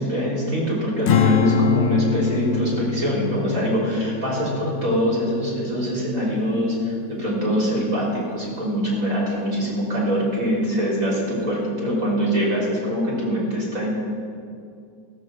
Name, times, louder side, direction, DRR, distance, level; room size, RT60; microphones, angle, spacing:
voice 1, 0.0-13.9, equal, 50° right, -5 dB, 4.0 m, -23 dB
Strum, 1.1-7.4, left 7 dB, 70° left, 0.6 m, -25 dB
15.0 x 6.7 x 7.6 m, 2.4 s
omnidirectional pair, 1.8 m